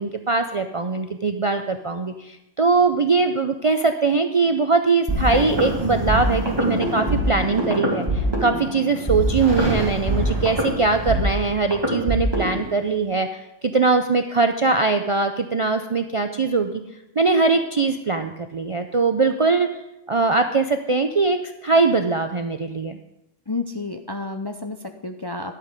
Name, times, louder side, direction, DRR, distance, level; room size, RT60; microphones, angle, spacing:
voice 1, 0.0-16.8 17.2-19.7 20.1-23.0, right 4 dB, 45° right, 7 dB, 0.4 m, -21 dB
sound 1, 5.1-12.6, equal, 20° right, 2.2 m, -24 dB
voice 2, 23.5-25.6, left 3 dB, 30° left, 5 dB, 0.4 m, -30 dB
11.5 x 8.3 x 5.2 m, 0.90 s
omnidirectional pair, 1.2 m